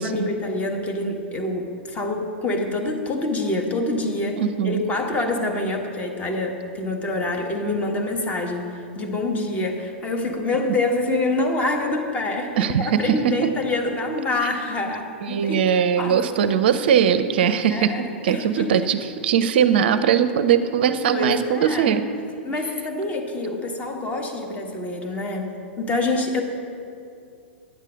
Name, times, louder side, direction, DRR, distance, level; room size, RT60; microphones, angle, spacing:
voice 1, 0.0-16.6 17.7-18.9 21.1-22.0 22.4-25.5 25.8-26.4, left 2 dB, 20° left, 3 dB, 1.5 m, -26 dB
voice 2, 4.4-4.9 12.6-13.0 13.2-13.5 15.2-17.9 18.2-22.0, right 8 dB, 55° right, 12 dB, 0.5 m, -20 dB
10.0 x 8.2 x 6.3 m, 2.5 s
figure-of-eight pair, 100°, 6 cm